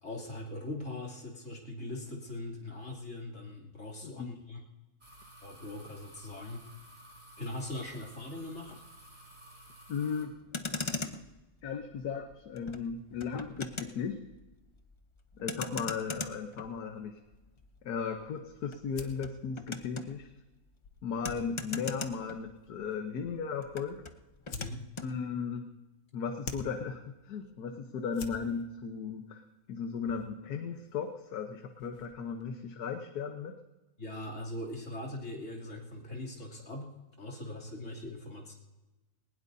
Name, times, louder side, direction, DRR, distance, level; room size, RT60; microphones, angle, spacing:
voice 1, 0.0-4.6 5.4-6.7 7.4-8.8 24.5-24.9 34.0-36.9 37.2-38.5, left 1 dB, 50° left, -2 dB, 3.3 m, -41 dB
sound 1, 5.0-10.2, right 1 dB, 60° right, 3.7 m, -54 dB
voice 2, 9.9-10.4 11.6-14.3 15.4-17.2 17.8-20.3 21.0-24.0 25.0-25.7 26.1-29.4 29.7-33.6, left 6 dB, 85° left, 5 dB, 1.5 m, -36 dB
Motor vehicle (road), 10.3-23.0 23.2-25.1, left 3 dB, 30° left, 0.5 m, -42 dB
sound 2, 15.6-32.5, left 5 dB, 70° left, 1.6 m, -52 dB
20.0 x 19.5 x 2.7 m, 1.1 s
omnidirectional pair, 1.6 m